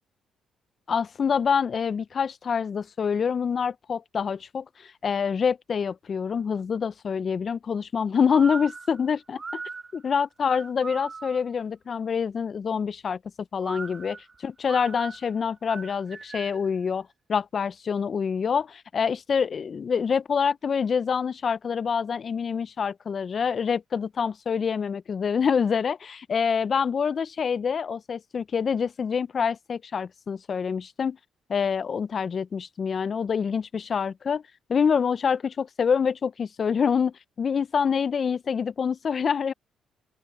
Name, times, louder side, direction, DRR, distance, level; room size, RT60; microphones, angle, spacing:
voice 1, 0.9-9.6 9.9-13.2 13.5-31.2 31.5-34.4 34.7-39.5, left 6 dB, 45° left, 0.4 m, -26 dB
sound 1, 8.3-11.6 13.6-16.7, right 4 dB, 30° right, 0.6 m, -39 dB
open air
cardioid pair, 90°, 0 cm